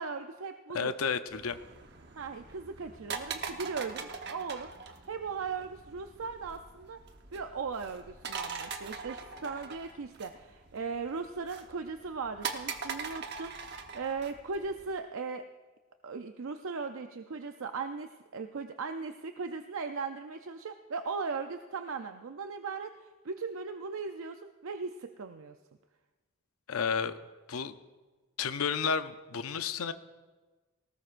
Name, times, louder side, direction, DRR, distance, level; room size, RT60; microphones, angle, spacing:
voice 1, 0.0-0.9 2.2-4.7 5.1-7.0 7.3-15.4 16.0-25.6, right 4 dB, 75° right, 7 dB, 0.5 m, -38 dB
voice 2, 0.7-1.6 26.7-27.1 27.5-27.7 28.4-29.9, left 6 dB, 85° left, 10 dB, 0.6 m, -31 dB
sound 1, 1.3-14.9, right 5 dB, 50° right, 1.0 m, -42 dB
19.0 x 18.5 x 2.5 m, 1.3 s
head